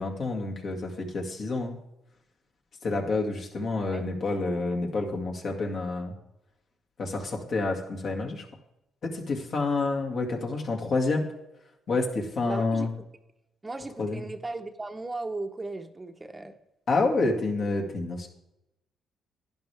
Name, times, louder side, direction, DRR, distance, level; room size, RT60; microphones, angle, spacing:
voice 1, 0.0-1.7 2.8-6.1 7.0-8.5 9.0-11.3 11.9-12.9 14.0-14.2 16.9-18.3, left 3 dB, 55° left, 2 dB, 2.1 m, -28 dB
voice 2, 12.5-12.9 13.6-16.5, right 2 dB, 20° right, 7 dB, 0.8 m, -36 dB
11.5 x 10.5 x 3.4 m, 0.89 s
cardioid pair, 90°, 0 cm